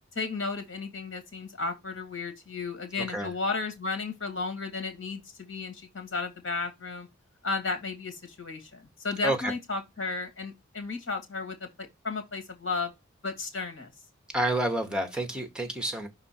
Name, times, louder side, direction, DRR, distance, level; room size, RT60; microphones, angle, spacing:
voice 1, 0.1-7.1 7.4-12.9 13.2-13.9, left 3 dB, 70° left, 2.3 m, -34 dB
voice 2, 14.3-16.1, right 1 dB, 5° right, 1.0 m, -29 dB
6.1 x 3.8 x 4.3 m
head